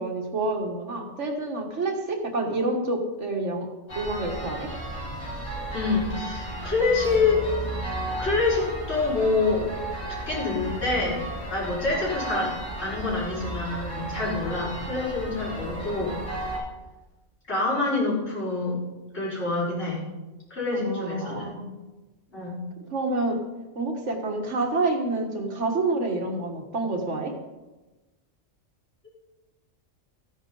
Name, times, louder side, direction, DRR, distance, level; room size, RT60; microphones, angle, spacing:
voice 1, 0.0-3.7 3.9-4.7 20.7-21.8 22.9-23.4 23.7-27.3, right 2 dB, 65° right, 3 dB, 1.7 m, -28 dB
sound 1, 3.9-16.6, right 1 dB, 90° left, 5.5 m, -34 dB
voice 2, 5.7-7.5 8.1-9.7 10.1-12.5 12.8-16.2 17.5-18.8 19.1-20.0 20.5-21.5 22.3-22.6 29.0-29.1, left 3 dB, 60° left, -8 dB, 5.2 m, -26 dB
14.5 x 10.5 x 3.8 m, 1.1 s
omnidirectional pair, 1.3 m